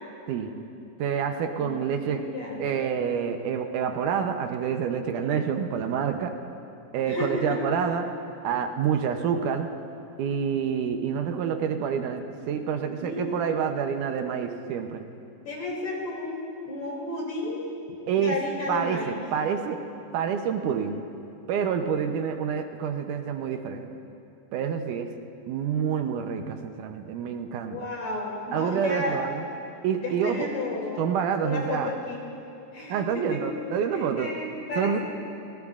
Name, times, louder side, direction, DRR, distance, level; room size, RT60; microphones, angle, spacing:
voice 1, 1.0-2.2 2.6-6.3 6.9-8.1 8.4-9.7 10.2-15.0 18.1-18.4 18.7-19.8 20.1-21.0 21.5-23.9 24.5-25.1 25.5-27.9 28.5-29.4 29.8-30.5 31.0-31.9 32.9-34.3 34.8-35.0, right 7 dB, 80° right, 5 dB, 2.2 m, -27 dB
voice 2, 1.6-2.6 7.1-7.6 12.9-13.4 15.4-17.7 18.1-19.2 27.7-29.2 30.0-31.1 31.4-32.2 32.7-33.4 33.9-35.0, left 2 dB, 55° left, -3 dB, 4.0 m, -33 dB
30.0 x 17.0 x 2.4 m, 2.7 s
omnidirectional pair, 3.7 m